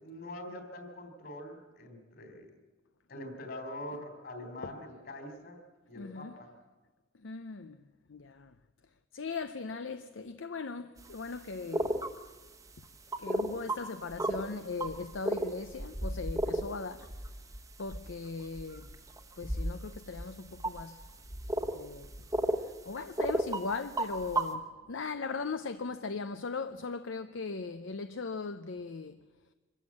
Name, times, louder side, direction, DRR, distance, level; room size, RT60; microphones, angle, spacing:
voice 1, 0.0-2.5 3.1-5.6 5.9-6.5, left 1 dB, 50° left, 3.5 m, -44 dB
voice 2, 5.9-6.3 7.2-7.8 8.1-8.5 9.1-12.0 13.2-17.1 17.8-18.9 19.4-21.0 21.7-22.1 22.6-29.2, left 4 dB, 70° left, 0.6 m, -39 dB
sound 1, 11.0-11.1 11.7-12.2 13.1-13.8 14.1-14.5 14.8-22.6 23.0-23.6 24.0-24.5, right 1 dB, 15° right, 1.1 m, -33 dB
24.5 x 14.0 x 8.6 m
head